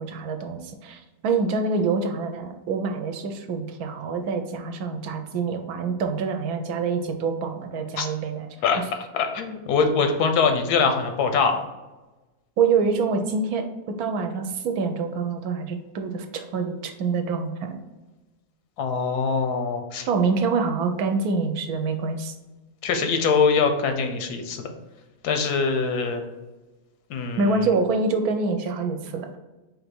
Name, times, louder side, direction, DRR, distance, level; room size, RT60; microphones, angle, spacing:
voice 1, 0.0-8.5 12.6-17.8 20.1-22.3 27.4-29.3, right 4 dB, 75° right, 5 dB, 1.1 m, -26 dB
voice 2, 9.1-11.6 18.8-20.1 22.8-24.7 25.2-26.2 27.1-27.7, left 5 dB, 90° left, 6 dB, 1.2 m, -23 dB
4.2 x 2.7 x 4.3 m, 1.1 s
omnidirectional pair, 1.6 m